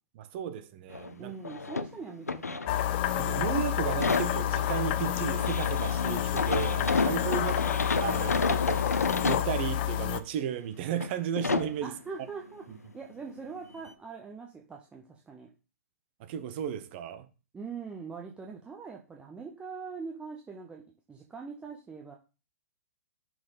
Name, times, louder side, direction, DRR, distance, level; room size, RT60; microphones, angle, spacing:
voice 1, 0.2-1.3 3.1-7.5 8.0-8.8 9.2-11.9 16.2-17.3, right 9 dB, 45° right, 0.8 m, -34 dB
sound 1, 0.9-1.2 1.4-3.2 3.5-9.5 10.1-10.2 10.9-11.1 11.4-11.8 13.4-13.5 13.9-14.0, left 4 dB, 90° left, 0.5 m, -31 dB
voice 2, 1.2-2.7 7.3-7.9 11.8-15.5 17.5-20.8 21.1-22.1, right 5 dB, 10° right, 0.8 m, -42 dB
sound 2, 2.7-10.2, left 12 dB, 45° left, 0.5 m, -29 dB
6.1 x 4.2 x 5.0 m
figure-of-eight pair, 115°, 8 cm